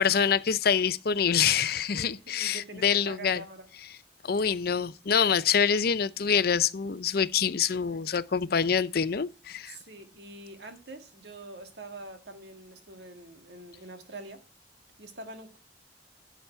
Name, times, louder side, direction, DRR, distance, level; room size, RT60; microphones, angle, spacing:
voice 1, 0.0-3.4 4.2-9.8, left 7 dB, 60° left, 0.6 m, -26 dB
voice 2, 1.9-3.7 9.7-14.4 15.0-15.6, right 2 dB, 70° right, 1.9 m, -45 dB
11.5 x 7.2 x 4.4 m
head